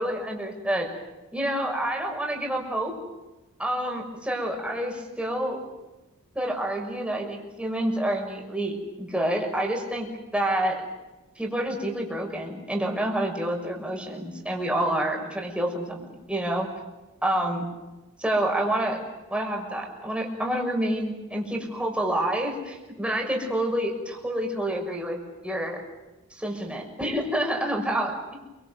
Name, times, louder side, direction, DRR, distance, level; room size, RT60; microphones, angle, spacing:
voice 1, 0.0-0.9 1.3-2.9 3.6-5.6 6.3-10.8 11.4-16.7 17.2-17.7 18.2-19.0 19.3-25.2 25.4-25.8 26.3-28.4, right 1 dB, 5° right, 1 dB, 6.1 m, -28 dB
29.0 x 25.0 x 8.0 m, 1.1 s
head